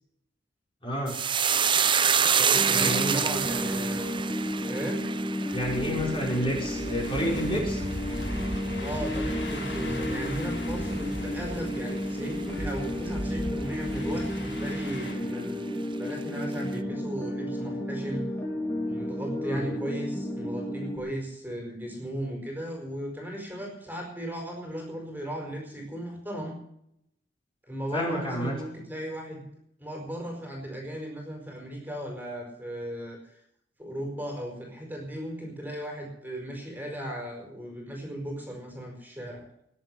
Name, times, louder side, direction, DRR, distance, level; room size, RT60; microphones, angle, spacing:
voice 1, 0.8-1.2 2.7-3.3 5.5-7.8 19.4-19.7 27.9-28.5, equal, 30° left, -2 dB, 5.3 m, -29 dB
sound 1, 1.1-9.7 10.0-10.6 10.9-11.2, right 7 dB, 25° right, 0.7 m, -28 dB
voice 2, 2.4-4.1 4.6-5.0 8.8-15.7 16.0-18.3 18.8-26.6 27.6-29.4 29.8-33.4 33.8-39.5, equal, 10° right, 0 dB, 4.7 m, -36 dB
sound 2, 2.5-21.0, equal, 10° left, 3.6 m, -32 dB
sound 3, 5.5-15.1, left 1 dB, 70° left, 6.4 m, -37 dB
20.5 x 8.0 x 7.9 m, 0.76 s
head